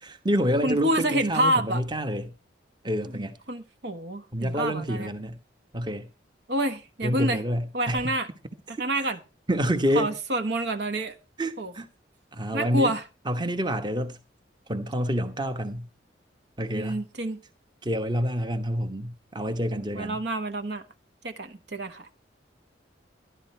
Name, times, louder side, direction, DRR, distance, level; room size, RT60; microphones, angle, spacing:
voice 1, 0.0-2.3 2.8-3.3 4.3-5.4 5.7-6.1 7.0-8.1 8.7-9.1 9.5-10.1 11.4-11.9 12.3-12.9 13.2-14.2 14.7-15.9 16.6-17.0 17.8-20.2, equal, 25° right, 1.2 m, -28 dB
voice 2, 0.6-1.8 3.1-5.1 6.5-7.4 7.7-8.3 8.8-9.2 10.0-11.2 11.6-11.7 12.5-13.0 16.7-17.4 19.7-20.8 21.2-22.1, right 1 dB, 65° right, 1.3 m, -28 dB
13.0 x 11.5 x 4.4 m
head